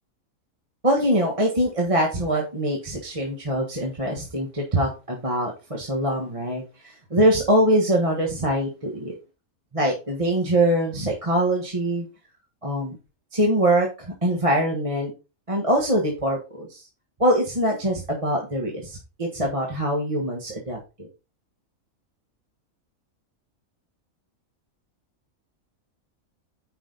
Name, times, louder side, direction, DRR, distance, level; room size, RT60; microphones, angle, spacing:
voice 1, 0.8-9.1 9.7-12.0 12.6-13.0 13.3-15.1 15.5-16.8 17.2-21.1, right 1 dB, 25° right, -1 dB, 1.6 m, -23 dB
10.0 x 5.1 x 4.0 m, 0.29 s
omnidirectional pair, 1.4 m